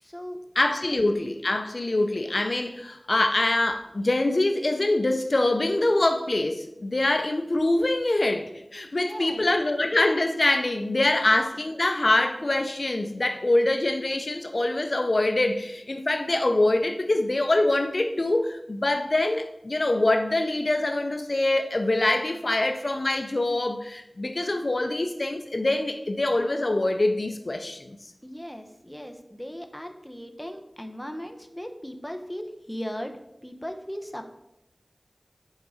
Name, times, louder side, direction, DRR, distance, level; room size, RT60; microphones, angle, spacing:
voice 1, 0.0-0.4 0.9-1.0 9.0-9.5 28.2-34.3, equal, 10° left, 0.8 m, -37 dB
voice 2, 0.6-27.9, left 2 dB, 65° left, 0.5 m, -24 dB
6.4 x 4.7 x 4.9 m
wide cardioid pair, 45°, 0 cm